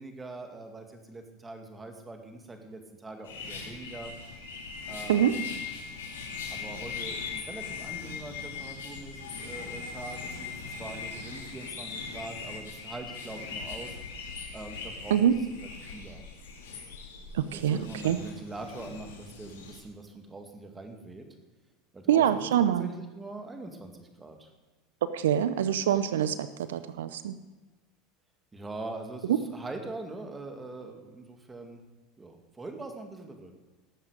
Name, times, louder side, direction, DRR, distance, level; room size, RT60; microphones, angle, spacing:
voice 1, 0.0-4.1 4.9-5.5 6.5-10.5 10.8-14.0 14.2-15.5 15.8-16.3 17.5-21.3 21.9-22.5 22.8-24.5 28.5-31.8 32.2-33.6, right 2 dB, 15° right, 4 dB, 2.2 m, -43 dB
sound 1, 3.2-19.8, left 5 dB, 90° left, 3.0 m, -40 dB
voice 2, 17.3-17.8 18.0-18.2 22.1-22.9 25.1-27.4, right 10 dB, 90° right, 12 dB, 0.6 m, -25 dB
18.0 x 7.4 x 5.1 m, 1.2 s
supercardioid pair, 105°, 0 cm